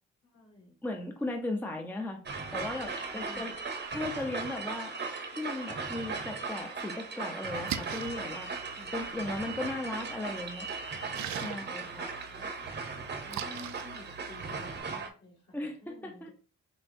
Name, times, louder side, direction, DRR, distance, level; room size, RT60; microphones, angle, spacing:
voice 1, 0.2-0.8 3.1-3.5 8.7-8.9 11.5-12.8 13.2-16.3, left 2 dB, 55° left, 0 dB, 1.8 m, -52 dB
voice 2, 0.8-2.2 2.5-3.5 3.9-4.9 5.3-8.5 8.9-10.7 11.4-12.0 15.5-15.8 16.0-16.3, left 2 dB, 5° left, 3 dB, 0.6 m, -36 dB
sound 1, 2.3-15.1, right 4 dB, 35° right, 0.8 m, -38 dB
Splash splatter, 7.4-14.8, right 9 dB, 65° right, 0.5 m, -43 dB
6.3 x 2.2 x 2.6 m, 0.38 s
cardioid pair, 90°, 30 cm